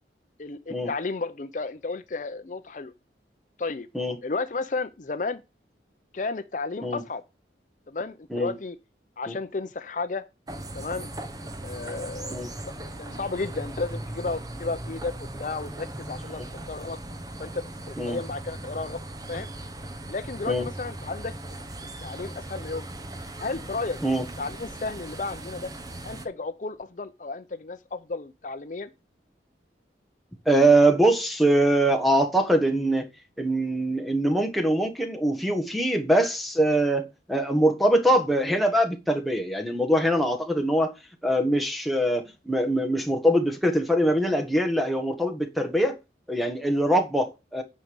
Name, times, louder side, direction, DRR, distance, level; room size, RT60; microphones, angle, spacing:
voice 1, 0.4-2.9 3.6-3.9 4.2-5.4 6.1-7.2 7.9-8.8 9.2-10.2 10.7-11.1 11.6-12.4 12.8-16.4 16.7-17.0 17.4-19.0 19.3-19.5 20.1-21.3 22.0-22.9 23.4-24.0 24.4-25.7 26.0-28.9, left 3 dB, 45° left, 0.6 m, -33 dB
sound 1, 10.5-26.3, right 1 dB, 20° right, 1.0 m, -38 dB
voice 2, 30.4-33.1 33.4-40.9 41.2-46.0 46.3-47.6, right 1 dB, ahead, 1.3 m, -23 dB
9.5 x 5.3 x 7.0 m
head